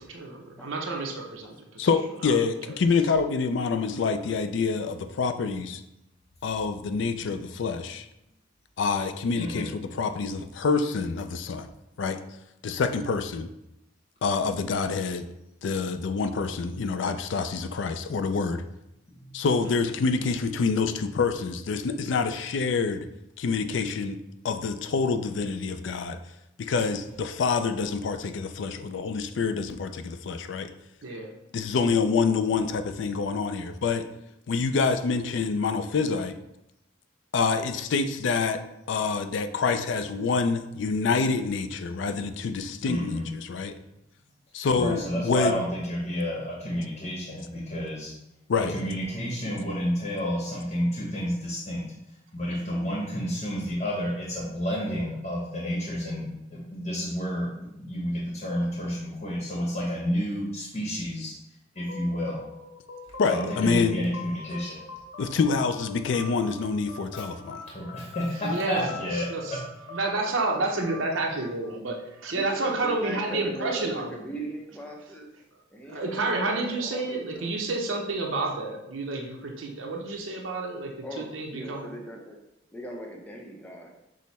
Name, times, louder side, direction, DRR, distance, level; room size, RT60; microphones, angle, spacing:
voice 1, 0.0-1.9 2.2-2.3 19.6-19.7 31.0-31.3 68.4-69.6 69.9-74.1 75.9-81.9, right 2 dB, 75° right, 0 dB, 0.8 m, -30 dB
voice 2, 1.8-5.8 6.4-8.1 8.8-11.7 12.0-12.2 12.6-13.5 14.2-15.2 15.6-18.6 19.3-23.1 23.4-24.2 24.4-26.2 26.6-30.7 31.5-34.1 34.5-36.4 37.3-38.6 38.9-43.7 44.5-45.5 48.5-48.7 63.2-64.0 65.2-67.6, left 4 dB, 65° left, 9 dB, 0.4 m, -27 dB
voice 3, 42.9-43.3 44.7-48.1 48.7-51.8 52.3-56.3 56.5-61.3 61.7-62.4 63.3-64.8 67.1-67.2 67.7-69.6, equal, 35° left, -4 dB, 0.9 m, -30 dB
sound 1, 61.8-72.4, left 2 dB, 85° left, 1.0 m, -44 dB
voice 4, 72.3-75.3 75.7-77.6 81.0-82.4 82.7-83.9, right 1 dB, 5° left, 0 dB, 0.6 m, -39 dB
6.3 x 2.1 x 4.1 m, 0.87 s
head